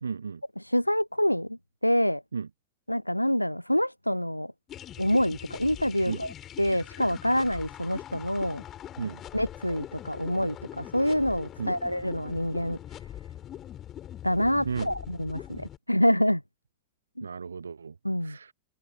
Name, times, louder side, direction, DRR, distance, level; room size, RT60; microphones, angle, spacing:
voice 1, 0.0-0.4 2.3-2.5 6.1-6.2 9.0-9.2 11.6-11.8 14.6-14.9 17.2-18.0 18.2-18.5, right 5 dB, 75° right, 0.4 m, -34 dB
voice 2, 0.7-1.6 1.8-2.2 2.9-4.5 5.0-6.3 6.6-8.6 9.3-12.8 14.2-16.4 17.2-17.3 18.0-18.4, equal, 90° left, 0.5 m, -26 dB
sound 1, 4.7-15.8, left 11 dB, 30° left, 3.4 m, -43 dB
figure-of-eight pair, 90°, 0 cm